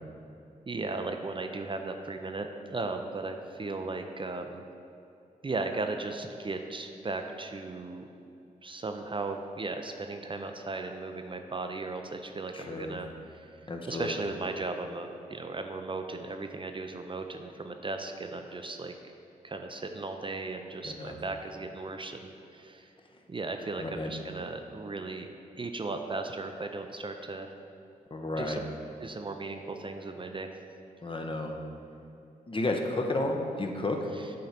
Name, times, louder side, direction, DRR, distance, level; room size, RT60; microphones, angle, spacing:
voice 1, 0.7-4.6 5.4-8.0 8.6-18.9 19.4-22.9 23.3-25.3 25.6-27.5 28.4-28.7 29.0-30.5 34.1-34.3, right 3 dB, 35° right, 5 dB, 0.5 m, -36 dB
voice 2, 12.5-12.9 13.7-14.2 20.8-21.2 23.8-24.1 28.1-28.6 31.0-31.6 32.5-34.0, left 2 dB, 35° left, 3 dB, 0.9 m, -32 dB
7.5 x 3.9 x 5.8 m, 2.7 s
cardioid pair, 55°, 16 cm